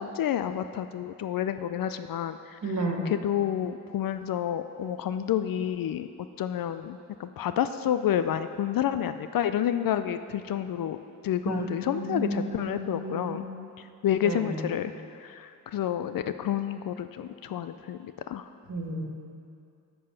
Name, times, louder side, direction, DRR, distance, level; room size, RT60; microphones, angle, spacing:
voice 1, 0.0-6.1 6.4-11.0 11.2-13.4 13.8-18.5, left 10 dB, 60° left, 11 dB, 0.5 m, -29 dB
voice 2, 2.6-3.0 11.5-13.4 14.2-14.6 18.7-19.0, right 2 dB, 40° right, 1 dB, 1.8 m, -32 dB
8.4 x 6.9 x 5.7 m, 2.5 s
supercardioid pair, 45°, 40 cm